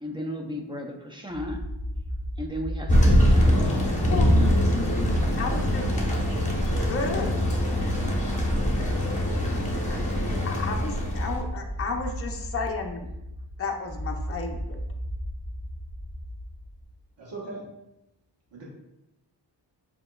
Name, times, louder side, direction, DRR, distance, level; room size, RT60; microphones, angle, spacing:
voice 1, 0.0-1.6 2.4-3.9, equal, 10° right, 1 dB, 0.6 m, -35 dB
sound 1, 1.3-16.8, equal, 30° right, 1.2 m, -35 dB
Thunder, 2.9-11.4, equal, 15° left, 1.0 m, -23 dB
voice 2, 5.4-5.8 6.9-7.3 10.4-13.1 13.6-14.8, left 4 dB, 35° left, 1 dB, 0.6 m, -32 dB
voice 3, 6.2-6.8 7.9-8.1 17.2-17.6 18.5-18.6, right 3 dB, 85° right, -4 dB, 1.3 m, -41 dB
7.1 x 2.9 x 2.3 m, 0.90 s
wide cardioid pair, 110°, 42 cm